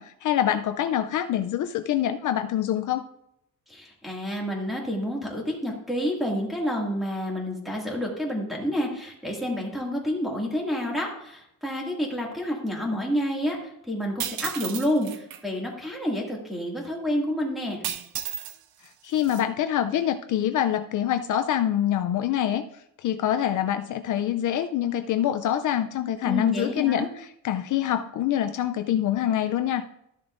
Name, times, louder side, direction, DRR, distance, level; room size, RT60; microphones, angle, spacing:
voice 1, 0.0-3.1 19.0-22.7 23.0-29.8, left 11 dB, 60° left, 8 dB, 0.5 m, -25 dB
voice 2, 3.7-17.8 26.2-27.1, equal, ahead, -3 dB, 2.2 m, -29 dB
sound 1, 14.2-15.4 17.8-18.6 18.9-19.4, right 10 dB, 85° right, 0.7 m, -33 dB
13.0 x 6.9 x 2.5 m, 0.77 s
cardioid pair, 135°, 36 cm